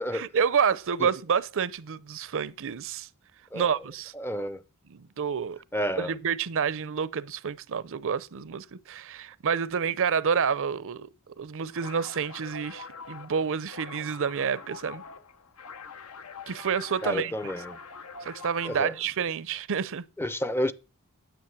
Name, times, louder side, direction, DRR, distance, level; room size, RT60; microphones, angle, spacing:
voice 1, 0.1-3.1 3.5-4.1 4.9-5.6 6.0-15.0 16.5-17.3 18.2-20.0, right 6 dB, 65° right, 0.6 m, -29 dB
voice 2, 4.1-4.6 5.7-6.1 17.0-17.8 18.6-19.0 20.2-20.7, equal, 10° left, 0.5 m, -30 dB
sound 1, 11.7-19.1, left 5 dB, 80° left, 1.0 m, -44 dB
9.5 x 8.8 x 7.2 m
head